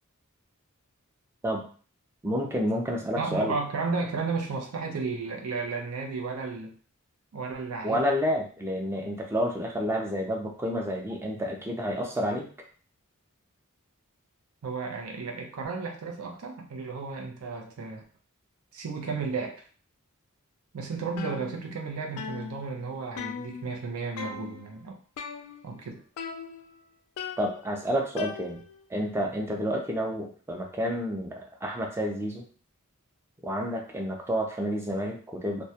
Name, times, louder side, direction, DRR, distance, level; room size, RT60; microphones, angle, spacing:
voice 1, 2.2-3.5 7.8-12.5 27.4-28.6 28.9-32.4 33.4-35.7, equal, 10° right, 0 dB, 0.4 m, -29 dB
voice 2, 3.2-6.8 7.3-8.0 14.6-18.0 18.7-19.6 20.7-25.0 25.6-26.0, right 4 dB, 85° right, 1 dB, 0.5 m, -33 dB
sound 1, 21.2-21.9 22.2-23.9 24.2-24.7 25.2-25.8 26.2-26.8 27.2-28.9, left 6 dB, 90° left, 0.3 m, -39 dB
2.2 x 2.1 x 2.7 m, 0.41 s
head